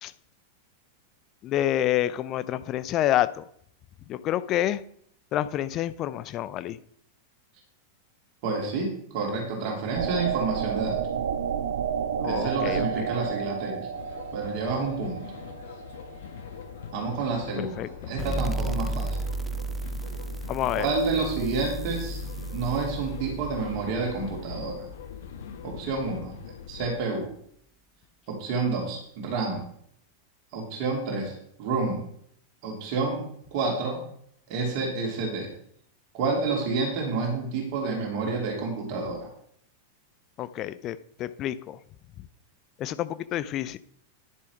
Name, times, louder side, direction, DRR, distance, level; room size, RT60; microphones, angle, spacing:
voice 1, 1.4-3.4 4.1-4.8 5.3-6.8 12.2-13.1 17.8-17.9 20.5-20.9 40.4-41.8 42.8-43.8, left 12 dB, 35° left, 14 dB, 0.6 m, -28 dB
voice 2, 8.4-11.0 12.2-13.9 14.3-15.2 16.9-19.2 20.7-22.2 22.5-24.9 25.6-26.4 26.7-27.3 28.3-29.6 30.5-32.0 32.6-33.2 33.5-34.0 34.5-35.5 36.1-39.3, right 4 dB, 45° right, -1 dB, 3.1 m, -29 dB
sound 1, 9.9-16.6, right 8 dB, 60° right, 0.6 m, -31 dB
sound 2, 13.9-26.9, left 7 dB, 55° left, 1.4 m, -42 dB
sound 3, 18.2-25.5, right 2 dB, 15° right, 0.5 m, -34 dB
10.5 x 7.0 x 4.6 m, 0.67 s
figure-of-eight pair, 90°, 0 cm